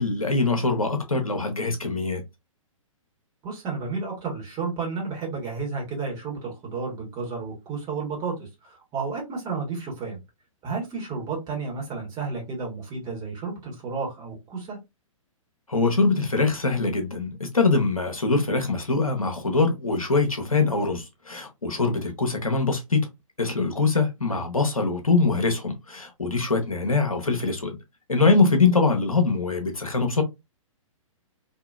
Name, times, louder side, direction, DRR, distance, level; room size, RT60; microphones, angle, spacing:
voice 1, 0.0-2.2 15.7-23.1 23.4-27.8 28.1-30.2, left 3 dB, 80° left, 0.8 m, -23 dB
voice 2, 3.4-10.2 10.6-14.8 24.3-24.4, right 4 dB, 20° right, 1.3 m, -32 dB
2.8 x 2.5 x 2.3 m
figure-of-eight pair, 115°, 17 cm